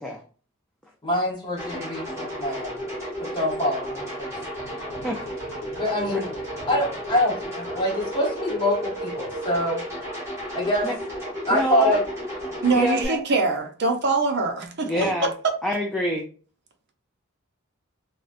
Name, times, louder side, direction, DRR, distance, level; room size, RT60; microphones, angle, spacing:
voice 1, 1.0-2.8 3.3-4.3 5.7-6.3 6.7-9.8 10.5-10.9 11.5-12.0 14.9-15.1, left 1 dB, 20° left, 0.9 m, -25 dB
sound 1, 1.6-13.0, equal, 15° right, 1.2 m, -33 dB
voice 2, 11.5-12.0 12.7-13.2 14.9-15.3 15.6-16.2, left 1 dB, 5° left, 0.3 m, -26 dB
voice 3, 12.6-14.9 15.2-15.5, right 3 dB, 55° right, 0.5 m, -23 dB
3.8 x 2.1 x 2.4 m
head